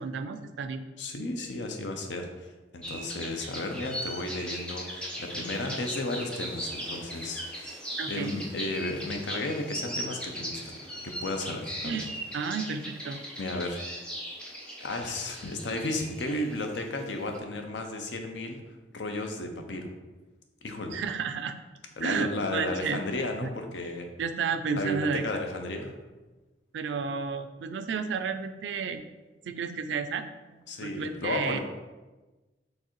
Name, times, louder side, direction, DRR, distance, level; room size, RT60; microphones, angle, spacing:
voice 1, 0.0-0.9 8.0-8.3 11.8-12.1 12.3-13.2 20.9-21.5 22.0-23.0 23.4-23.5 24.2-25.2 26.7-29.0 29.4-30.5 30.8-31.6, right 5 dB, 90° right, 9 dB, 0.4 m, -32 dB
voice 2, 1.0-2.3 2.7-10.8 11.0-12.1 13.4-14.0 14.8-18.6 18.9-19.9 20.6-21.0 22.0-24.1 24.8-25.9 30.7-31.6, left 2 dB, 90° left, 4 dB, 0.6 m, -34 dB
sound 1, 2.8-17.4, equal, 5° left, 0.7 m, -39 dB
4.5 x 3.2 x 3.1 m, 1.2 s
head